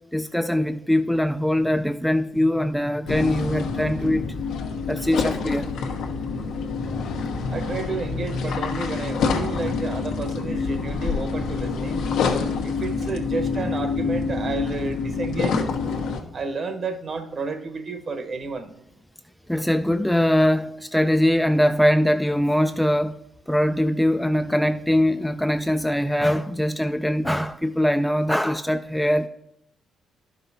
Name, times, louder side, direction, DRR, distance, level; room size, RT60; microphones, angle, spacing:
voice 1, 0.1-4.4 4.9-5.7 19.5-23.1 23.5-29.3, left 1 dB, 5° left, 0.4 m, -22 dB
sound 1, 3.1-16.2, left 4 dB, 85° left, 1.0 m, -27 dB
voice 2, 7.5-12.1 12.6-15.8 16.3-18.7, right 4 dB, 45° right, 1.2 m, -31 dB
11.0 x 5.4 x 4.1 m
cardioid pair, 90°, 0 cm